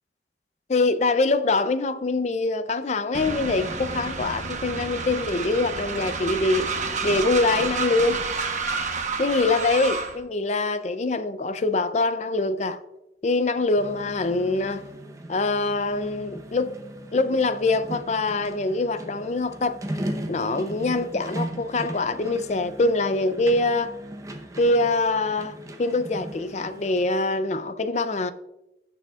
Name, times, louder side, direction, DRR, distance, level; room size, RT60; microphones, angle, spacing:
voice 1, 0.7-8.2 9.2-12.8 13.2-14.8 15.3-16.7 17.1-19.8 20.3-23.9 24.6-28.3, left 3 dB, 40° left, 0.5 m, -24 dB
Train, 3.1-10.2, right 4 dB, 45° right, 1.0 m, -30 dB
sound 1, 13.8-27.1, right 1 dB, 20° right, 0.8 m, -38 dB
16.0 x 6.8 x 2.4 m
head